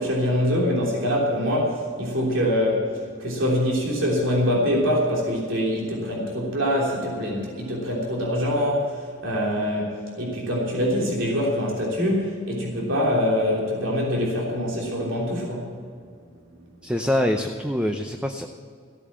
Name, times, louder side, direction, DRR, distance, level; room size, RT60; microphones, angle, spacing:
voice 1, 0.0-15.7, equal, 80° right, -3 dB, 3.4 m, -24 dB
voice 2, 16.8-18.5, left 1 dB, 5° right, 5 dB, 0.6 m, -24 dB
15.0 x 8.9 x 7.4 m, 2.2 s
head